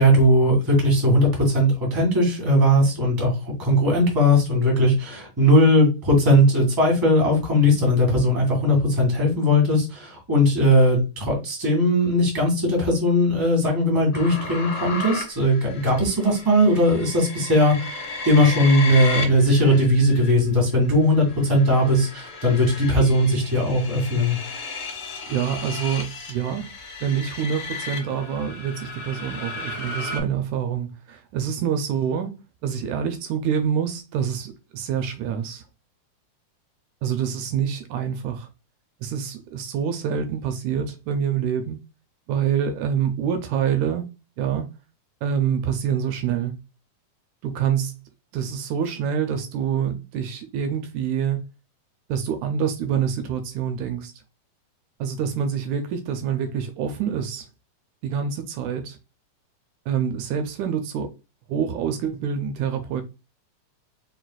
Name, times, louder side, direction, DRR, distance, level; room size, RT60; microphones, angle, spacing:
voice 1, 0.0-24.4, equal, 10° right, 1.3 m, -19 dB
sound 1, 14.1-20.3 20.9-30.2, left 3 dB, 50° left, 1.9 m, -34 dB
voice 2, 25.3-26.7 27.0-35.6 37.0-38.5 39.0-41.8 42.3-44.1 44.4-44.7 45.2-46.6 47.4-48.0 48.3-51.5 52.1-54.1 55.0-57.5 58.0-59.0 59.9-61.2 61.5-63.0, right 8 dB, 80° right, 2.0 m, -26 dB
4.6 x 4.0 x 2.3 m
omnidirectional pair, 3.6 m